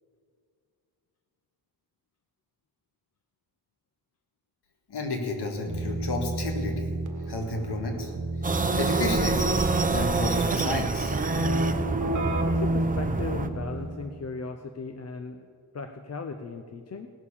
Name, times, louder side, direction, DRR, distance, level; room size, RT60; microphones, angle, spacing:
voice 1, 4.9-6.9 7.3-8.1 8.7-11.2, left 2 dB, 85° left, 3 dB, 1.8 m, -31 dB
Keyboard (musical), 5.7-14.1, right 2 dB, 50° right, 1.4 m, -30 dB
sound 1, 8.4-13.5, right 4 dB, 20° right, 0.6 m, -27 dB
voice 2, 12.4-15.5 15.7-17.1, left 4 dB, 40° left, 7 dB, 0.6 m, -37 dB
17.5 x 6.6 x 7.1 m, 2.2 s
wide cardioid pair, 120°, 39 cm